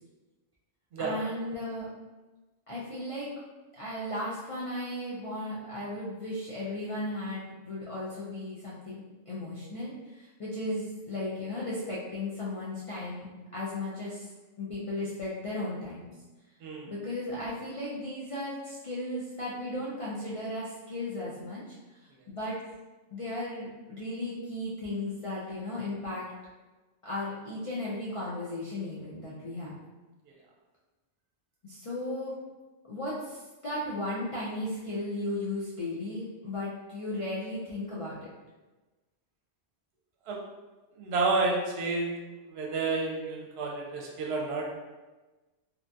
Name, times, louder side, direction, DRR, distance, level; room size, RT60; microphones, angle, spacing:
voice 1, 1.0-1.9 2.7-3.3 3.7-14.3 14.6-16.1 16.9-21.6 22.0-22.6 23.1-26.3 27.0-29.7 31.6-32.3 32.9-38.2, left 1 dB, 60° left, -7 dB, 0.3 m, -35 dB
voice 2, 16.6-16.9 40.3-40.4 41.0-42.1 42.5-44.6, right 3 dB, 75° right, -2 dB, 0.8 m, -30 dB
2.7 x 2.2 x 2.5 m, 1.2 s
omnidirectional pair, 1.1 m